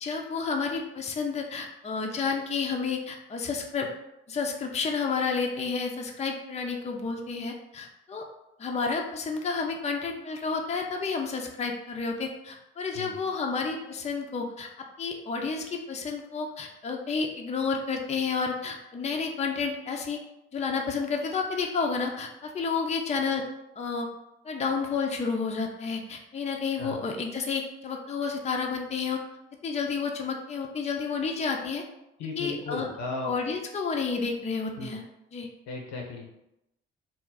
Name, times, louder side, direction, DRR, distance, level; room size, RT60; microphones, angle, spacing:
voice 1, 0.0-3.9 4.3-8.2 8.6-20.2 20.5-23.4 23.8-24.1 24.4-29.2 29.6-31.8 32.4-32.9 33.2-35.0 35.3-35.5, left 5 dB, 25° left, 2 dB, 0.5 m, -30 dB
voice 2, 32.2-33.3 34.8-34.9 35.7-36.3, left 3 dB, 70° left, 0 dB, 0.7 m, -35 dB
2.5 x 2.0 x 3.8 m, 0.87 s
hypercardioid pair, 45°, 29 cm